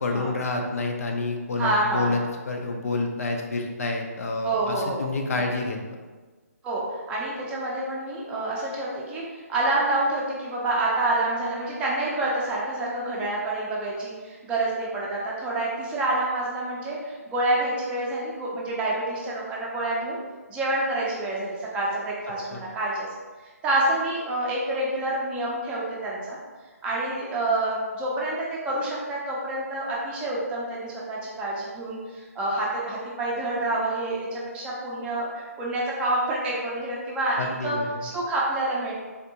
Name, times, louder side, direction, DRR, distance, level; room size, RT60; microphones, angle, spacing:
voice 1, 0.0-5.8 22.3-22.6 37.4-38.1, left 3 dB, 65° left, 2 dB, 0.5 m, -28 dB
voice 2, 1.6-2.2 4.4-5.0 6.6-6.8 7.1-20.2 20.5-23.1 23.6-26.4 26.8-37.4 37.6-38.9, right 2 dB, 15° right, -5 dB, 0.5 m, -27 dB
3.5 x 2.5 x 2.8 m, 1.3 s
hypercardioid pair, 150°, 9 cm